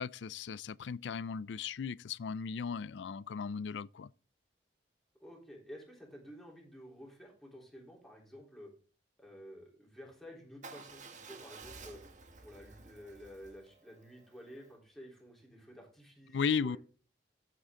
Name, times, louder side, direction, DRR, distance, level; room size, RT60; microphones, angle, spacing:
voice 1, 0.0-4.1 16.3-16.8, left 6 dB, 75° left, 0.4 m, -36 dB
voice 2, 5.2-8.7 9.2-12.0 12.4-16.8, equal, ahead, 3.6 m, -52 dB
Motorcycle / Engine starting / Idling, 10.6-14.7, right 4 dB, 45° right, 1.5 m, -53 dB
13.0 x 7.7 x 3.8 m
head